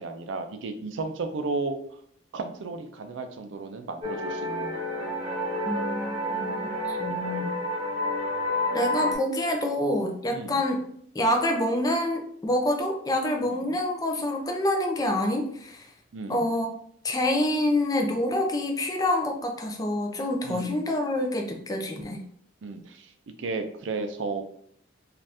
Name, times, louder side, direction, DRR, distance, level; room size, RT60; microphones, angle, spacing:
voice 1, 0.0-1.8 2.3-4.8 10.3-10.6 13.5-13.7 16.1-16.5 20.4-20.8 22.6-23.1 23.4-24.4, right 3 dB, 80° right, 7 dB, 0.4 m, -33 dB
sound 1, 4.0-9.2, left 1 dB, 30° right, 0.9 m, -29 dB
voice 2, 5.7-6.6 6.8-7.5 8.7-10.8 11.1-15.9 16.3-16.7 17.0-22.2, left 1 dB, 20° left, 3 dB, 0.4 m, -27 dB
2.7 x 2.4 x 3.3 m, 0.63 s
head